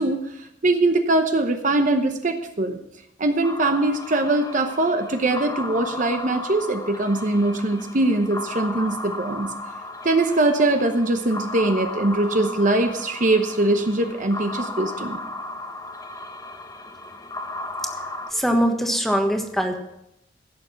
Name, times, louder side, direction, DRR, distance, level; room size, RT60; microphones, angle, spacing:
voice 1, 0.0-2.8 3.2-9.5 10.0-15.2, right 2 dB, 45° right, 6 dB, 0.9 m, -22 dB
sound 1, 3.4-18.3, left 2 dB, 20° left, 1.0 m, -35 dB
voice 2, 18.3-19.8, equal, ahead, 4 dB, 1.3 m, -22 dB
16.0 x 6.9 x 5.9 m, 0.81 s
head